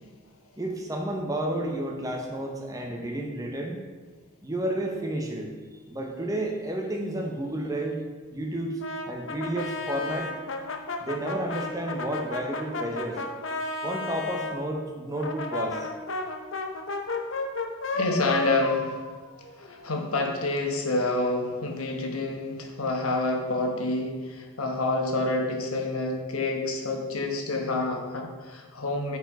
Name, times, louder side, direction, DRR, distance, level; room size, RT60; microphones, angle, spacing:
voice 1, 0.6-3.8 4.4-5.5 5.9-8.0 8.3-8.8 9.1-10.3 11.0-13.2 13.8-15.9, right 1 dB, 15° right, 0 dB, 0.8 m, -31 dB
Brass instrument, 8.8-14.6 15.2-19.9, left 3 dB, 60° left, 0.7 m, -33 dB
voice 2, 17.9-18.9 19.6-29.2, left 2 dB, 85° left, 2 dB, 1.1 m, -28 dB
8.4 x 4.8 x 4.7 m, 1.4 s
head